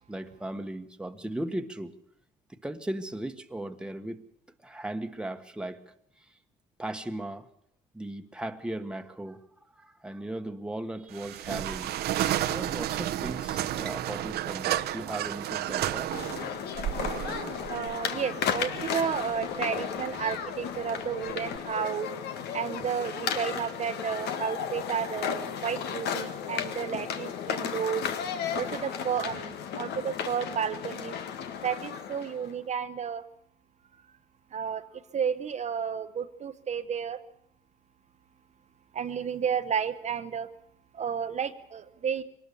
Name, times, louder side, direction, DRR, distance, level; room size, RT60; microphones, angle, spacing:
voice 1, 0.1-1.9 2.5-4.2 4.6-5.8 6.2-6.3 6.8-7.5 7.9-9.4 9.7-11.9 12.5-16.1, right 1 dB, 5° right, 1.3 m, -37 dB
sound 1, 11.1-21.6, right 12 dB, 70° right, 0.9 m, -33 dB
sound 2, 16.1-32.5, left 8 dB, 75° left, 1.8 m, -34 dB
voice 2, 17.7-22.1 22.5-28.0 28.5-31.2 31.6-33.2 34.5-37.2 38.9-40.5 40.9-42.2, right 7 dB, 40° right, 1.0 m, -32 dB
23.5 x 19.0 x 7.0 m
cardioid pair, 110°, 17 cm